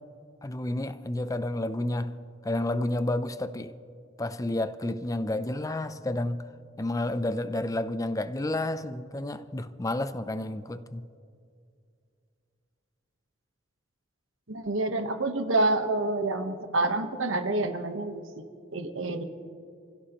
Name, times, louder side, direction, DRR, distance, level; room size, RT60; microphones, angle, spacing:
voice 1, 0.4-3.7 4.2-6.5 6.8-11.1, left 1 dB, 15° left, 0.5 m, -30 dB
voice 2, 14.5-18.2 18.7-19.2, right 2 dB, 70° right, 1.2 m, -27 dB
29.0 x 16.5 x 3.0 m
head